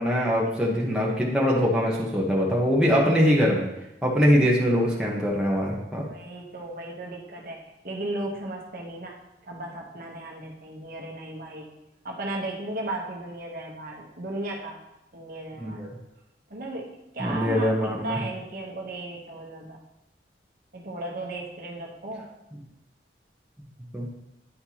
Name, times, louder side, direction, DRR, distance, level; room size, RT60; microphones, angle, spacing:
voice 1, 0.0-3.7 4.0-6.0 15.6-15.9 17.2-18.2 23.9-24.1, equal, 5° right, -5 dB, 1.0 m, -23 dB
voice 2, 6.0-9.2 9.5-11.7 12.0-14.8 15.1-15.9 16.5-19.8 20.7-22.3, right 2 dB, 50° right, -1 dB, 1.0 m, -35 dB
9.6 x 4.4 x 2.9 m, 0.93 s
head